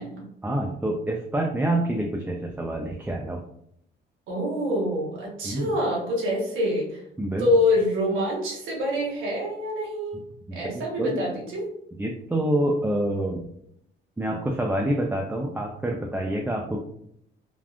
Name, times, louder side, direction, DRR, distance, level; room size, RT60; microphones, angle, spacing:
voice 1, 0.4-3.4 5.4-5.7 7.2-7.5 10.5-11.4 12.0-13.5 14.2-16.8, right 1 dB, 10° right, 0 dB, 0.3 m, -27 dB
voice 2, 4.3-7.0 7.4-10.2 10.5-11.6, left 1 dB, 85° right, -3 dB, 1.1 m, -26 dB
3.4 x 2.3 x 2.4 m, 0.71 s
cardioid pair, 90°, 20 cm